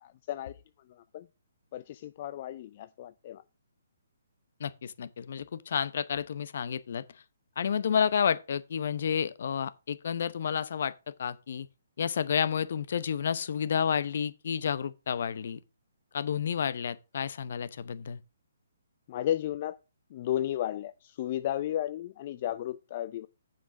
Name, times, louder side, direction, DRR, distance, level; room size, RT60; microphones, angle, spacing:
voice 1, 0.0-0.5 0.9-1.3 1.7-3.4 19.1-19.8 20.1-23.3, left 12 dB, 40° left, 0.4 m, -33 dB
voice 2, 4.6-7.0 7.6-10.9 11.2-11.7 12.0-15.6 16.1-18.2, left 7 dB, 60° left, 0.8 m, -30 dB
7.4 x 6.0 x 5.9 m
hypercardioid pair, 140°, 0 cm